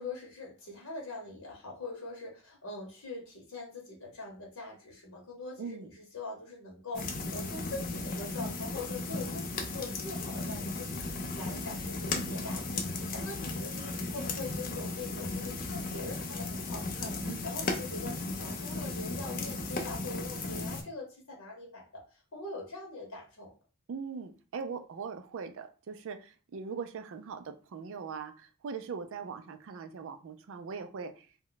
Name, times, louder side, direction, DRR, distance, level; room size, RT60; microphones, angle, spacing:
voice 1, 0.0-22.0 22.3-23.5, left 3 dB, 70° left, -1 dB, 0.9 m, -43 dB
voice 2, 5.6-5.9 17.3-17.5 23.9-31.3, right 5 dB, 60° right, 8 dB, 0.4 m, -41 dB
sound 1, 6.9-20.8, left 3 dB, 40° left, 0.4 m, -36 dB
2.2 x 2.1 x 3.8 m, 0.36 s
head